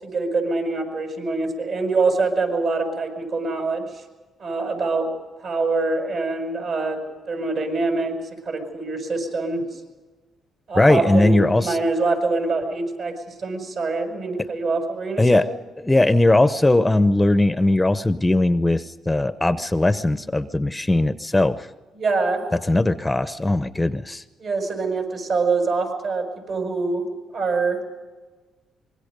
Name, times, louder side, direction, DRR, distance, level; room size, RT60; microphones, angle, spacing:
voice 1, 0.0-4.0 4.4-5.1 5.4-7.0 7.3-8.2 8.5-9.6 10.7-15.4 21.9-22.4 24.4-27.1 27.3-27.8, right 3 dB, 55° right, 4 dB, 6.9 m, -24 dB
voice 2, 10.8-11.8 15.2-15.4 15.8-21.7 22.7-24.2, left 2 dB, 10° left, 12 dB, 0.7 m, -19 dB
25.5 x 22.0 x 5.3 m, 1.3 s
cardioid pair, 90°, 0 cm